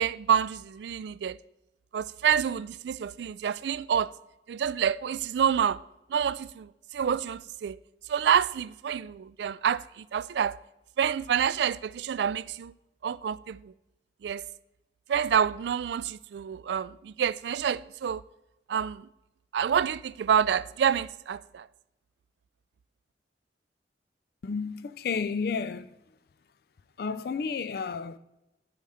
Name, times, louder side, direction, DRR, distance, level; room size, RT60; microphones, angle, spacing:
voice 1, 0.0-1.4 1.9-4.1 4.5-5.8 6.1-7.8 8.1-10.6 11.0-12.7 13.0-13.7 14.2-14.4 15.1-18.2 18.7-19.1 19.5-21.7, right 8 dB, 70° right, 0.3 m, -28 dB
voice 2, 24.4-25.9 27.0-28.2, left 5 dB, 60° left, 0.4 m, -31 dB
11.0 x 4.9 x 5.6 m
head